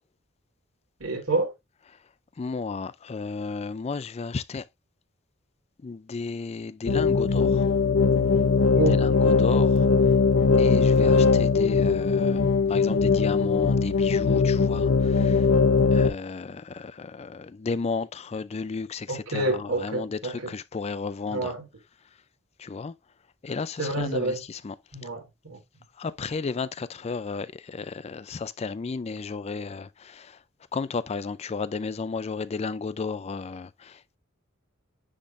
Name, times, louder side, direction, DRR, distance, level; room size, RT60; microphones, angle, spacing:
voice 1, 1.0-1.5 8.7-9.0 19.1-20.5 21.3-21.7 23.8-24.4 24.9-25.6, right 2 dB, 85° right, 3.0 m, -28 dB
voice 2, 2.4-4.6 5.8-7.7 8.9-9.8 10.6-15.5 15.9-21.5 22.6-22.9 23.4-24.8 26.0-30.4 30.7-34.2, left 4 dB, 30° left, 0.4 m, -33 dB
sound 1, 6.9-16.1, left 4 dB, 75° left, 0.7 m, -20 dB
10.0 x 3.7 x 2.5 m
head